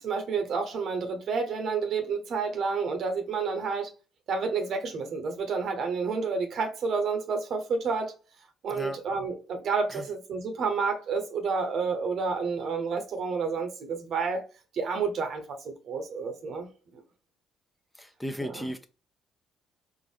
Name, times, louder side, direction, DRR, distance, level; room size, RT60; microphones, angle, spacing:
voice 1, 0.0-3.9 4.3-8.1 8.6-14.4 14.7-17.0 18.4-18.7, right 5 dB, 60° right, 1.0 m, -30 dB
voice 2, 8.7-9.0 9.9-10.0 18.0-18.9, equal, 10° left, 0.6 m, -35 dB
4.6 x 2.5 x 3.4 m
hypercardioid pair, 50°, 0 cm